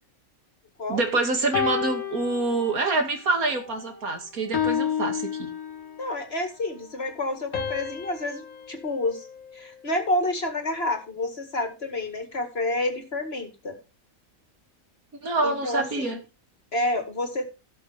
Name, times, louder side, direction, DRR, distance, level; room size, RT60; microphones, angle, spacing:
voice 1, 0.9-5.5 15.2-16.2, right 3 dB, 85° right, 4 dB, 2.6 m, -26 dB
sound 1, 1.5-3.1 3.5-3.9 4.5-6.2 7.5-9.9, left 7 dB, 85° left, 1.7 m, -31 dB
voice 2, 6.0-9.3 9.5-13.8 15.4-16.2 16.7-17.5, left 2 dB, 45° left, 6 dB, 2.1 m, -29 dB
17.0 x 6.4 x 3.3 m, 0.28 s
omnidirectional pair, 1.5 m